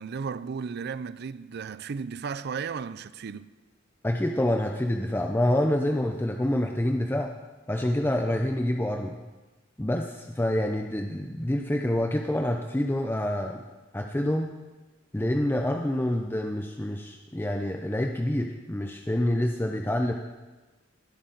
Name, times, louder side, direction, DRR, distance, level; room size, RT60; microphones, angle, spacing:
voice 1, 0.0-3.5, right 5 dB, 55° right, 0.4 m, -34 dB
voice 2, 4.0-7.3 7.7-9.2 9.8-13.6 13.9-14.5 15.1-20.1, left 1 dB, 10° left, 0.6 m, -27 dB
20.0 x 8.5 x 3.9 m
head